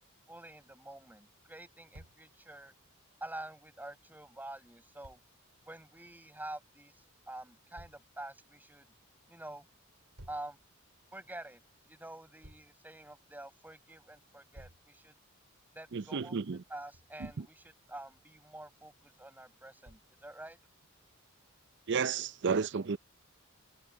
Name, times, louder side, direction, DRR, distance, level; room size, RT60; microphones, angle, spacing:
voice 1, 0.3-2.7 3.2-5.2 5.7-8.9 9.3-9.7 10.3-10.6 11.1-15.1 15.7-16.4 16.7-20.6, right 1 dB, 10° right, 7.1 m, -47 dB
Thump thud, 1.9-2.2 5.0-5.2 7.8-8.0 10.2-10.5 12.4-12.7 14.5-14.9 16.9-17.5 19.8-20.2, right 1 dB, 85° right, 2.8 m, -54 dB
voice 2, 15.9-16.6 17.4-17.5 21.9-23.0, right 5 dB, 55° right, 0.6 m, -32 dB
head